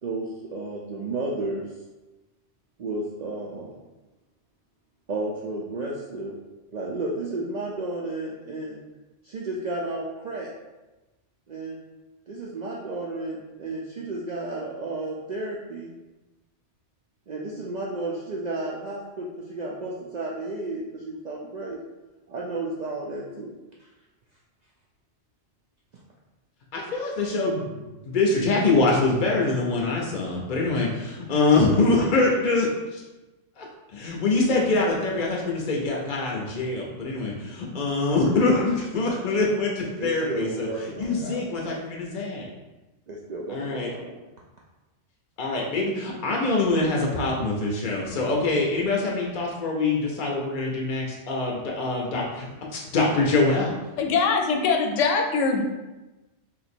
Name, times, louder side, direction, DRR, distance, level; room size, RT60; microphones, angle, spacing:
voice 1, 0.0-1.7 2.8-3.8 5.1-6.3 6.7-8.8 9.2-10.5 11.5-11.8 12.3-15.9 17.3-21.8 22.3-23.5 23.8-23.9 40.0-41.6 43.1-44.2, right 2 dB, 70° right, -4 dB, 0.4 m, -32 dB
voice 2, 26.7-33.0 33.6-33.7 33.9-40.7 41.0-42.5 43.5-43.9 45.4-53.7, left 3 dB, 50° left, -1 dB, 0.7 m, -24 dB
voice 3, 54.0-55.6, left 4 dB, 85° left, 3 dB, 0.9 m, -22 dB
2.9 x 2.6 x 4.3 m, 1.1 s
omnidirectional pair, 1.2 m